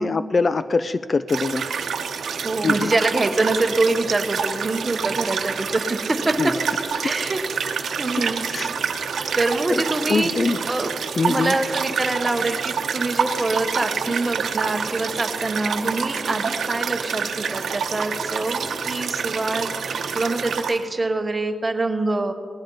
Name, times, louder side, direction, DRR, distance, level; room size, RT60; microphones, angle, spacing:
voice 1, 0.0-1.7 2.6-2.9 6.4-6.5 7.0-7.1 8.5-8.7 9.7-9.8 10.1-10.6 11.2-11.5, left 4 dB, 35° left, 13 dB, 0.4 m, -23 dB
sound 1, 1.3-20.8, right 6 dB, 80° right, 0.9 m, -27 dB
voice 2, 2.4-6.6 7.0-7.4 8.0-8.4 9.4-10.9 11.3-22.3, right 2 dB, 25° right, 6 dB, 1.1 m, -25 dB
19.5 x 15.5 x 4.0 m, 2.1 s
wide cardioid pair, 135°, 0 cm